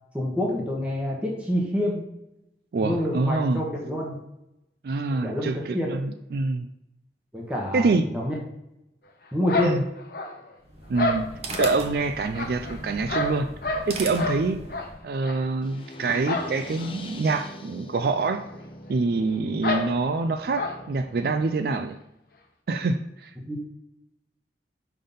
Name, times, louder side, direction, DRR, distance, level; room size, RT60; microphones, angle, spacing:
voice 1, 0.1-2.0 2.8-4.2 5.2-5.9 7.3-8.4 9.3-9.7 23.4-23.6, left 1 dB, 5° right, -3 dB, 1.0 m, -27 dB
voice 2, 2.7-3.7 4.8-6.7 7.7-8.0 9.6-9.8 10.9-11.3 11.6-13.5 13.9-14.6 15.0-18.4 18.9-22.0 22.7-23.3, right 3 dB, 60° right, 8 dB, 0.3 m, -26 dB
sound 1, 9.5-10.5 10.9-11.8 12.3-13.9 14.2-14.4 14.7-14.9 15.2-15.4 16.2-16.5 16.8-16.9 17.3-17.4 18.2-18.3 18.6-18.7 19.6-19.9 20.5-20.8, left 2 dB, 60° left, 0.9 m, -28 dB
sound 2, 10.6-15.1, right 2 dB, 35° right, 0.9 m, -38 dB
sound 3, 15.6-21.6, left 1 dB, 30° left, 0.6 m, -43 dB
5.5 x 3.5 x 5.4 m, 0.86 s
head